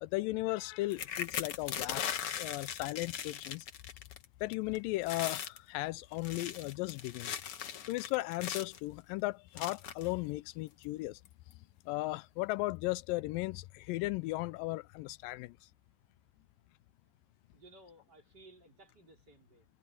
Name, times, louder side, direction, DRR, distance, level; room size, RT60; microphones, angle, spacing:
voice 1, 0.0-2.1 2.4-3.7 4.4-7.3 7.9-11.2 11.9-15.6, left 20 dB, 90° left, 2.3 m, -36 dB
sound 1, 0.9-4.2 4.5-4.8 5.0-5.6 6.1-8.8 9.6-10.1 10.8-10.9 11.2-11.5, left 9 dB, 60° left, 1.7 m, -39 dB
voice 2, 17.5-19.7, right 2 dB, 30° right, 5.0 m, -58 dB
omnidirectional pair, 3.9 m